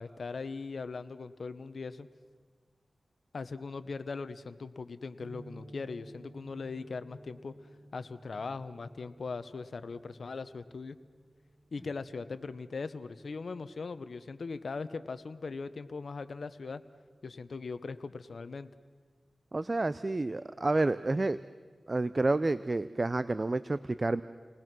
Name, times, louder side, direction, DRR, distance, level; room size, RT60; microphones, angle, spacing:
voice 1, 0.0-2.1 3.3-7.5 7.9-11.0 11.7-16.8 17.2-18.7, left 4 dB, 75° left, 12 dB, 0.9 m, -40 dB
sound 1, 5.2-12.0, right 1 dB, 25° right, 6.1 m, -54 dB
voice 2, 19.5-21.4 21.9-24.2, right 2 dB, 40° right, 14 dB, 0.6 m, -29 dB
30.0 x 20.0 x 6.1 m, 1.5 s
cardioid pair, 55°, 0 cm